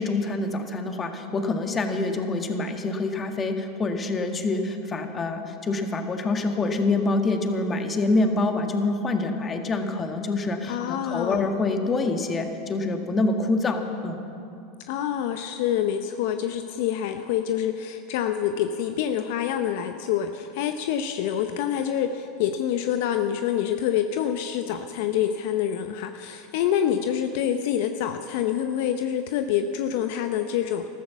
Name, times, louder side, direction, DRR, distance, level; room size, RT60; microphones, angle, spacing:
voice 1, 0.0-14.2, left 3 dB, 25° left, 5 dB, 1.6 m, -26 dB
voice 2, 10.7-11.5 14.9-30.9, left 9 dB, 65° left, 8 dB, 0.7 m, -26 dB
13.5 x 13.0 x 7.3 m, 2.7 s
hypercardioid pair, 90°, 0 cm